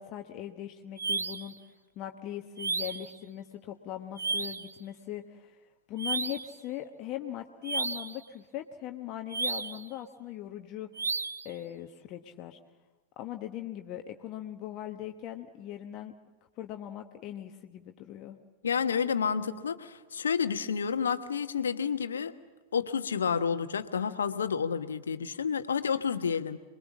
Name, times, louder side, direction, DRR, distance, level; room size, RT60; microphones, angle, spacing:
voice 1, 0.0-1.6 2.0-5.6 5.9-10.9 11.4-12.6 13.2-16.1 16.6-18.4, left 12 dB, 40° left, 5 dB, 1.2 m, -40 dB
sound 1, 1.0-1.5 2.6-3.1 4.2-4.7 6.0-6.6 7.6-8.2 9.3-9.9 11.0-11.5, right 4 dB, 75° right, 0.8 m, -33 dB
voice 2, 18.6-22.3 22.7-26.6, left 6 dB, 70° left, 10 dB, 1.2 m, -30 dB
27.0 x 21.5 x 7.3 m, 1.2 s
figure-of-eight pair, 90°, 0 cm